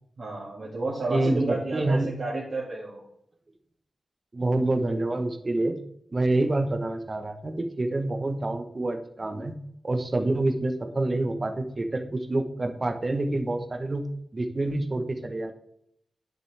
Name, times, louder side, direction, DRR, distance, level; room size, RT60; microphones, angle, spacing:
voice 1, 0.2-3.0, right 2 dB, 50° right, -6 dB, 2.1 m, -31 dB
voice 2, 1.1-2.1 4.3-5.8 6.1-9.6 9.8-14.0 14.3-15.5, right 2 dB, 35° right, 6 dB, 1.0 m, -27 dB
9.9 x 6.6 x 3.4 m, 0.73 s
wide cardioid pair, 100°, 0 cm